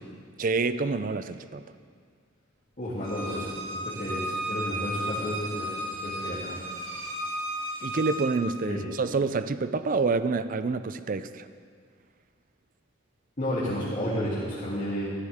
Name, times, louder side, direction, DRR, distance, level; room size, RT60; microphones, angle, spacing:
voice 1, 0.4-1.6 7.8-11.5, right 4 dB, 45° right, 12 dB, 0.5 m, -27 dB
voice 2, 2.8-5.7 6.0-6.6 8.7-8.9 13.4-15.1, equal, 40° left, -11 dB, 2.9 m, -32 dB
Bowed string instrument, 3.0-8.3, right 1 dB, 90° right, 2.2 m, -34 dB
15.0 x 14.5 x 3.6 m, 2.1 s
head